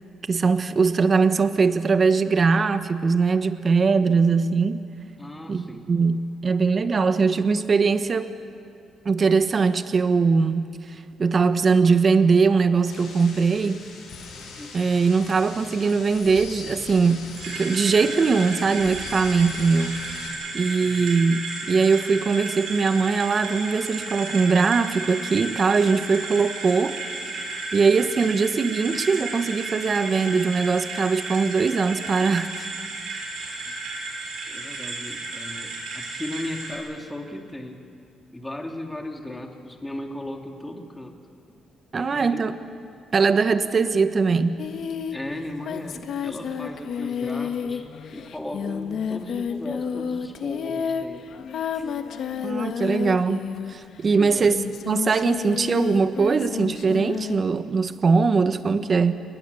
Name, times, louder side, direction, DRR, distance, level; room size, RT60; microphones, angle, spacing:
voice 1, 0.3-4.8 5.5-8.3 9.0-13.8 14.7-20.1 20.5-27.0 27.7-32.7 41.9-42.5 43.1-44.6 52.4-53.4 53.7-54.5 54.9-59.1, right 4 dB, 40° right, 10 dB, 1.3 m, -21 dB
voice 2, 5.2-5.9 14.6-15.0 20.8-21.2 34.5-37.9 38.3-41.2 41.9-42.5 45.1-51.3 51.7-51.9 54.1-54.6, left 1 dB, 10° left, 2 dB, 3.0 m, -36 dB
sound 1, 12.9-20.3, left 5 dB, 85° left, 7.4 m, -41 dB
sound 2, 17.4-36.7, right 3 dB, 80° right, 6.3 m, -33 dB
Singing, 44.6-54.0 54.4-57.4, left 7 dB, 65° left, 1.4 m, -31 dB
29.5 x 21.0 x 7.1 m, 2.5 s
cardioid pair, 90°, 0 cm